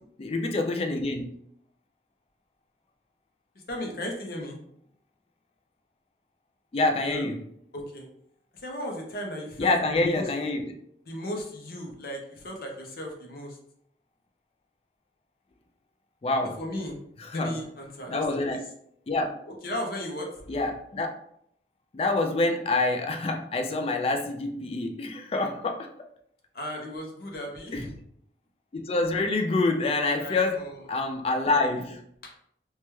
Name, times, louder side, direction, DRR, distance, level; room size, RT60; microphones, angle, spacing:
voice 1, 0.2-1.3 6.7-7.4 9.6-10.7 16.2-16.6 17.2-17.6 18.1-18.6 19.1-19.4 20.5-21.1 21.9-25.9 27.7-27.9 28.7-32.0, left 2 dB, 35° left, 0.3 m, -27 dB
voice 2, 3.7-4.6 7.0-7.3 7.7-8.1 8.6-10.3 11.1-13.6 16.6-17.0 17.3-18.6 19.6-20.3 26.5-27.9 30.2-30.7 32.2-32.3, equal, 55° left, 0.7 m, -36 dB
3.1 x 2.2 x 3.0 m
head